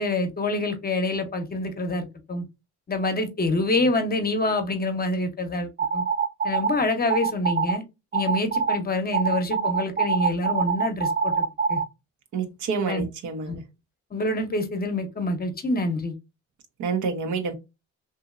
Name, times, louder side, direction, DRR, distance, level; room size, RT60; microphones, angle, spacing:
voice 1, 0.0-2.4 2.9-6.0 6.4-7.8 8.1-11.8 12.9-13.1 13.5-13.6 14.1-16.1, left 2 dB, 30° left, 0.7 m, -26 dB
sound 1, 5.8-6.7 7.1-7.8 8.1-8.8 9.1-11.9, right 5 dB, 30° right, 0.4 m, -24 dB
voice 2, 12.3-13.6 16.8-17.5, right 5 dB, 75° right, 0.8 m, -28 dB
2.8 x 2.6 x 2.4 m
cardioid pair, 90°, 30 cm